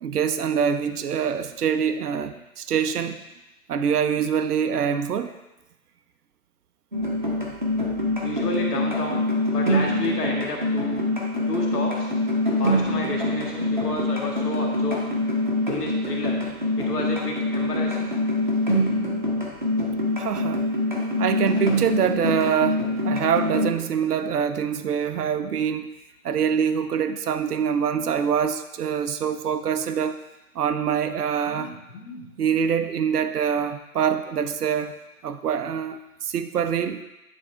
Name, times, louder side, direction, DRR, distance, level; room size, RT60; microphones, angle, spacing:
voice 1, 0.0-3.2 3.7-5.4 20.2-20.7 21.2-25.9 26.2-30.2 30.5-31.7 32.4-35.0 35.2-37.0, right 7 dB, 85° right, 10 dB, 0.6 m, -25 dB
sound 1, 6.9-23.7, left 1 dB, 35° right, 0.6 m, -25 dB
voice 2, 7.6-9.2 9.5-11.1 11.5-12.1 12.6-15.1 15.7-16.4 16.8-18.1 31.4-32.3, left 2 dB, 90° left, -1 dB, 1.9 m, -32 dB
8.8 x 3.9 x 3.3 m, 1.0 s
hypercardioid pair, 180°, 45 cm